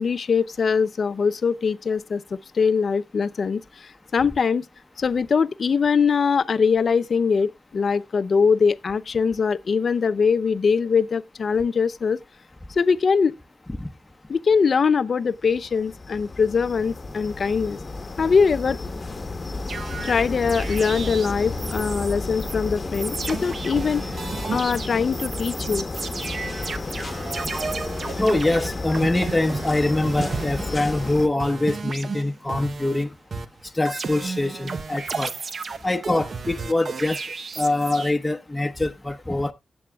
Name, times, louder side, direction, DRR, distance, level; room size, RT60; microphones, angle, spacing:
voice 1, 0.0-4.6 5.0-12.2 12.7-13.4 14.3-17.8 18.2-18.8 20.0-24.0 24.5-25.9, left 5 dB, 60° left, 0.5 m, -22 dB
sound 1, 15.4-31.3, left 3 dB, 40° left, 1.0 m, -32 dB
sound 2, 19.7-22.1 22.4-22.5 22.9-31.1 31.4-33.0 33.3-38.1, right 4 dB, 60° right, 0.8 m, -33 dB
voice 2, 28.2-33.1 33.7-35.4 35.8-37.2 37.6-39.5, left 2 dB, 15° left, 0.9 m, -24 dB
17.0 x 7.8 x 2.3 m
cardioid pair, 60°, 0 cm